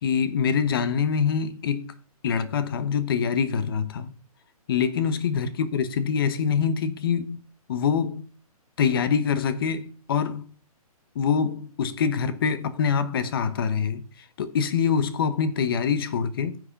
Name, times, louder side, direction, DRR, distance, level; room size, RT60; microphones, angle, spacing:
voice 1, 0.0-1.9 2.2-4.1 4.7-7.4 7.7-8.3 8.8-10.5 11.1-14.0 14.4-16.6, left 6 dB, 35° left, 1.0 m, -25 dB
9.9 x 6.4 x 5.2 m
hypercardioid pair, 165°, 19 cm